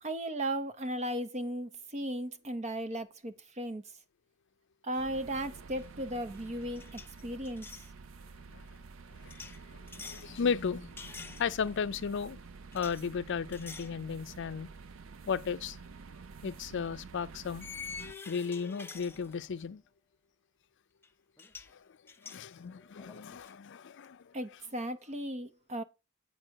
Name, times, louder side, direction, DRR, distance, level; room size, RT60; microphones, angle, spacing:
voice 1, 0.0-3.9 4.8-7.7 24.3-25.8, right 1 dB, 35° right, 0.7 m, -36 dB
sound 1, 5.0-18.1, right 4 dB, 70° right, 0.5 m, -49 dB
sound 2, 5.8-6.0 6.3-7.9 9.3-10.3 11.0-11.8 12.7-13.0 13.5-14.0 14.4-14.6 16.1-16.2 17.6-19.7 21.0-21.1 21.4-21.7 22.1-23.5, left 5 dB, 10° left, 0.7 m, -47 dB
voice 2, 10.0-12.4 12.7-14.7 15.3-15.8 16.4-17.7 18.3-19.8 21.7-21.8 22.2-24.3, left 6 dB, 60° left, 0.5 m, -35 dB
8.8 x 4.6 x 4.6 m
head